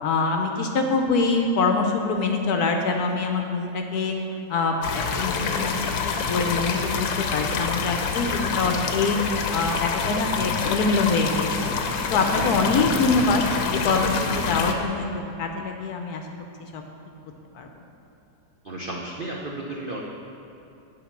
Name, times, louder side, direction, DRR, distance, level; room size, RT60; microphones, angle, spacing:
voice 1, 0.0-4.1 4.5-5.7 6.0-9.2 9.5-11.7 12.1-13.4 13.7-16.2 16.7-16.8 17.6-17.7, left 4 dB, 65° left, 4 dB, 1.0 m, -24 dB
sound 1, 4.8-14.7, left 5 dB, 90° left, 1.5 m, -27 dB
voice 2, 18.6-20.0, right 2 dB, 75° right, -2 dB, 0.5 m, -33 dB
8.7 x 5.0 x 7.0 m, 2.7 s
omnidirectional pair, 2.0 m